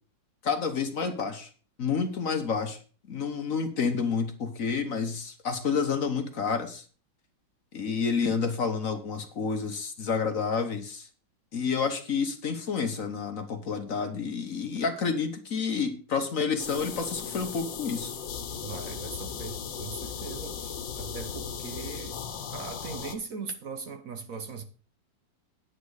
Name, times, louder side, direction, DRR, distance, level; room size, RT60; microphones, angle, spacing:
voice 1, 0.4-1.5 1.8-2.8 3.1-6.8 7.7-11.1 11.5-18.1, left 5 dB, 50° left, 1.3 m, -29 dB
sound 1, 16.6-23.1, left 7 dB, 85° left, 1.8 m, -37 dB
voice 2, 18.6-22.2 22.5-24.6, right 5 dB, 55° right, 1.2 m, -40 dB
9.4 x 8.8 x 4.8 m
omnidirectional pair, 2.0 m